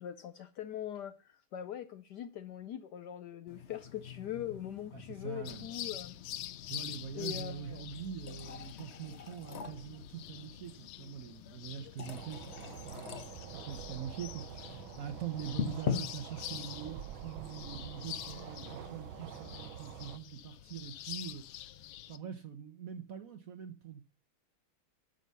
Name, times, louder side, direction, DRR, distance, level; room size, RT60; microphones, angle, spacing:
voice 1, 0.0-6.2 7.1-7.8, left 10 dB, 70° left, 1.0 m, -42 dB
sound 1, 3.5-19.8, left 7 dB, 50° left, 0.8 m, -45 dB
voice 2, 4.9-5.7 6.7-13.3 13.5-24.0, right 9 dB, 60° right, 0.9 m, -44 dB
sound 2, 5.4-22.2, left 13 dB, 90° left, 1.5 m, -47 dB
sound 3, 12.0-20.2, right 11 dB, 75° right, 1.4 m, -47 dB
10.5 x 6.4 x 5.4 m
omnidirectional pair, 2.3 m